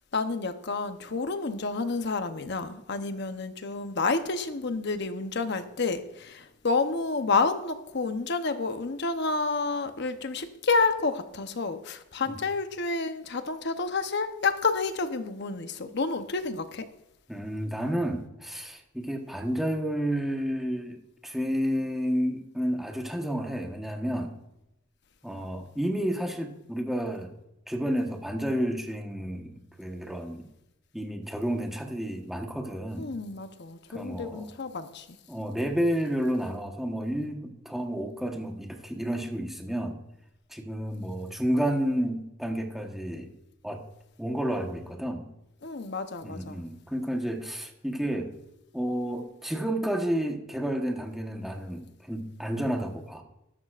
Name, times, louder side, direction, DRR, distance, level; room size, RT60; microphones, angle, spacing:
voice 1, 0.0-16.9 33.0-35.2 45.6-46.6, left 4 dB, 60° left, 0.9 m, -29 dB
voice 2, 17.3-21.0 21.2-24.4 25.2-27.3 27.7-30.5 30.9-33.1 33.9-34.5 35.3-40.0 40.5-43.3 43.6-43.8 44.2-45.3 46.2-48.3 48.7-53.2, equal, ahead, 1.2 m, -31 dB
13.0 x 12.5 x 2.5 m
head